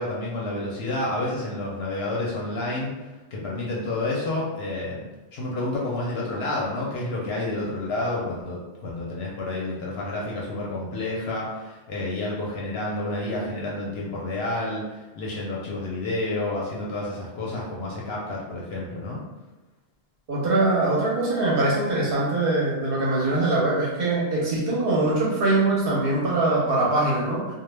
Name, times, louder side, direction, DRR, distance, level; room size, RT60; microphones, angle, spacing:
voice 1, 0.0-2.9 3.3-5.1 5.3-19.2, left 2 dB, 65° left, -3 dB, 0.7 m, -29 dB
voice 2, 20.3-27.5, right 2 dB, 55° right, -6 dB, 0.7 m, -22 dB
2.1 x 2.1 x 3.1 m, 1.1 s
omnidirectional pair, 1.3 m